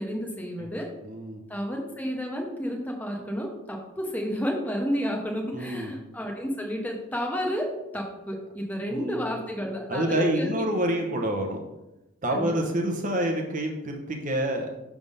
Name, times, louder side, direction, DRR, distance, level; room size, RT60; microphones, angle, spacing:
voice 1, 0.0-0.9 1.5-10.5 12.3-12.7, equal, 5° left, 0 dB, 0.9 m, -31 dB
voice 2, 1.0-1.4 5.5-5.9 8.9-9.3 9.9-11.7 12.2-14.7, right 1 dB, 35° right, 2 dB, 0.9 m, -27 dB
6.8 x 3.6 x 5.4 m, 0.95 s
head